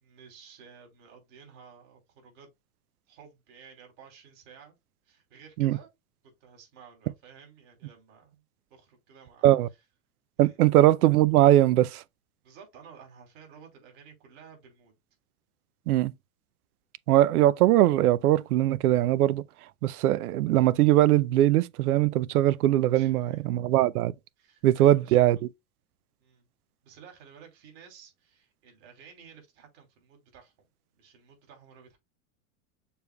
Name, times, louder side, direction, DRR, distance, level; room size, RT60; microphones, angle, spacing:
voice 1, 0.0-2.5 3.1-4.8 5.0-5.9 6.2-8.4 8.7-9.5 10.4-10.6 12.4-15.0 22.9-23.4 24.4-25.3 26.2-26.5 26.8-30.5 30.9-32.0, right 6 dB, 55° right, 3.0 m, -53 dB
voice 2, 10.4-12.0 15.9-16.1 17.1-19.4 19.8-24.1 24.6-25.4, right 14 dB, 85° right, 0.6 m, -21 dB
6.8 x 3.5 x 2.2 m
hypercardioid pair, 120°, 44 cm